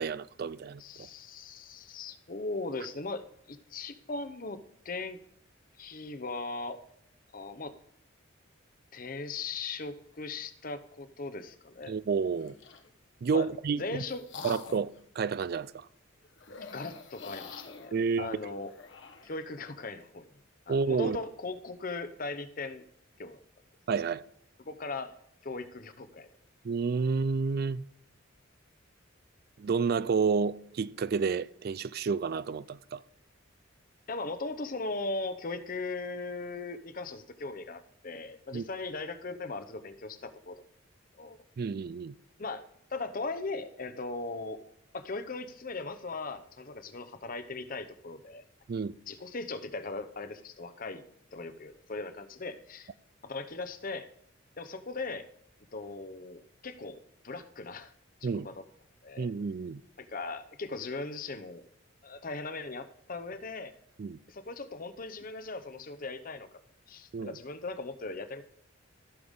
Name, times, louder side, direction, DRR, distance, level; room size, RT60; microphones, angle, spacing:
voice 1, 0.0-1.1 11.9-12.5 13.2-14.0 14.4-15.9 17.9-18.3 20.7-21.2 23.9-24.2 26.6-27.9 29.6-33.0 38.5-38.6 41.6-42.1 48.7-48.9 58.2-58.5 59.2-59.8 64.0-64.2 67.1-67.4, right 5 dB, 50° right, 0.3 m, -30 dB
voice 2, 0.8-5.2 5.8-6.8 7.3-7.7 8.9-11.9 13.3-13.5 13.7-14.2 16.7-18.7 19.2-20.4 20.7-22.8 23.2-23.4 24.6-25.1 25.4-26.3 34.1-40.6 41.1-41.4 42.4-42.6 42.9-44.6 44.9-48.4 49.1-51.0 51.3-52.9 53.2-54.1 54.6-55.3 55.7-57.9 58.2-58.7 59.0-59.3 60.0-61.6 62.0-63.7 64.3-66.5 66.9-68.5, left 3 dB, 45° left, 0.8 m, -38 dB
sound 1, 12.3-12.9 13.6-15.0 16.4-19.4, left 4 dB, 60° left, 1.1 m, -47 dB
15.0 x 6.8 x 3.6 m
head